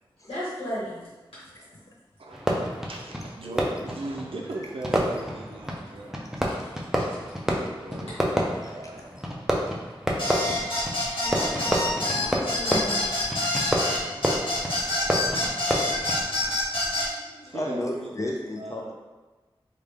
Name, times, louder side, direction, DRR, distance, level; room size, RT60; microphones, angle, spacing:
voice 1, 0.3-1.1 1.6-1.7 6.5-6.6 7.0-7.2 11.2-13.2, equal, 85° left, -10 dB, 1.2 m, -35 dB
voice 2, 2.2-6.2 7.5-9.1 14.6-14.9 15.3-16.0 17.5-18.9, right 2 dB, 80° right, 0 dB, 0.4 m, -39 dB
Fireworks, 2.3-16.6, equal, 5° right, 0.6 m, -30 dB
sound 1, 10.2-17.1, left 1 dB, 65° left, 1.3 m, -27 dB
voice 3, 16.7-18.9, left 1 dB, 35° left, 0 dB, 0.6 m, -33 dB
3.4 x 2.4 x 3.3 m, 1.2 s
wide cardioid pair, 45°, 9 cm